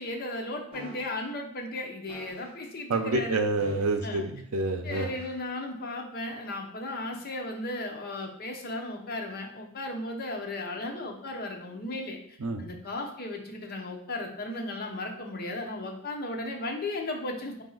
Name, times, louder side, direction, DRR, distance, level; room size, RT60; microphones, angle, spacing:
voice 1, 0.0-3.4 4.0-4.3 4.8-12.2 12.6-17.6, left 2 dB, 45° left, 2 dB, 0.7 m, -35 dB
sound 1, 0.7-1.2 2.1-2.6 3.5-4.2 4.9-5.5 6.2-6.4, left 1 dB, 25° right, 1.3 m, -46 dB
voice 2, 2.9-5.1 12.4-12.6, right 2 dB, 80° right, 6 dB, 0.6 m, -28 dB
4.9 x 2.7 x 3.8 m, 0.71 s
head